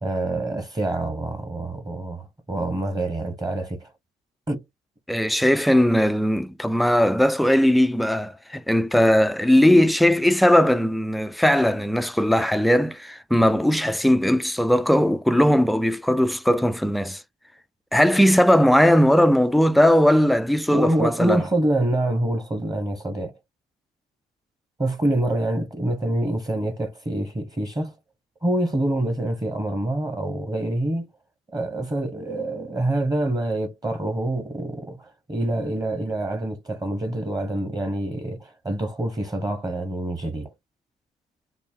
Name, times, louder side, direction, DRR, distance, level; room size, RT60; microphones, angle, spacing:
voice 1, 0.0-3.9 4.5-4.6 20.7-23.4 24.8-27.9 28.4-31.1 31.5-40.5, right 1 dB, 20° right, 1.1 m, -26 dB
voice 2, 5.1-17.2 17.9-21.4, equal, ahead, 0.4 m, -19 dB
4.0 x 2.1 x 3.6 m
cardioid pair, 90°, 20 cm